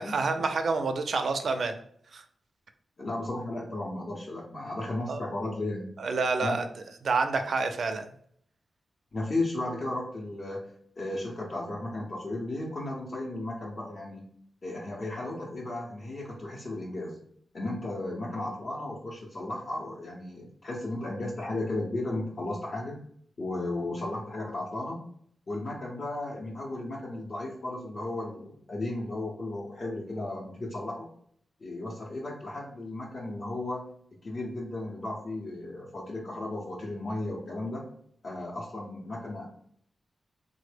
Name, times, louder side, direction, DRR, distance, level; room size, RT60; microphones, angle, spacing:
voice 1, 0.0-1.8 2.1-2.2 5.1-5.2 6.0-6.7 7.0-8.1, right 4 dB, 70° right, 7 dB, 0.4 m, -28 dB
voice 2, 3.0-5.9 6.4-6.6 9.1-10.6 11.0-14.2 14.6-17.2 17.5-22.9 23.4-25.0 25.5-31.1 31.6-33.8 34.2-37.8 38.2-39.5, left 2 dB, 50° left, -4 dB, 0.6 m, -34 dB
3.5 x 2.0 x 3.3 m, 0.65 s
wide cardioid pair, 105°, 0 cm